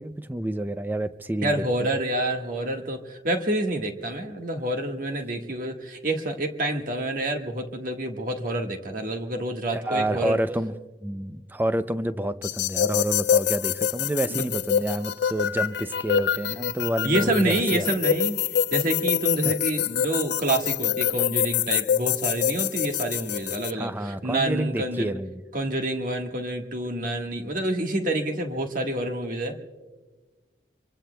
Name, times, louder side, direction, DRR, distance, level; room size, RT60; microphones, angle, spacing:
voice 1, 0.0-1.9 9.7-10.7 11.0-17.9 19.4-19.5 23.7-25.4, right 1 dB, 10° right, 12 dB, 0.4 m, -29 dB
voice 2, 1.4-10.4 14.3-14.5 17.0-18.4 18.7-25.1 25.5-29.6, right 1 dB, 45° right, 3 dB, 1.5 m, -28 dB
sound 1, 12.4-23.7, left 9 dB, 70° left, 0.5 m, -26 dB
27.0 x 23.5 x 2.3 m, 1.2 s
head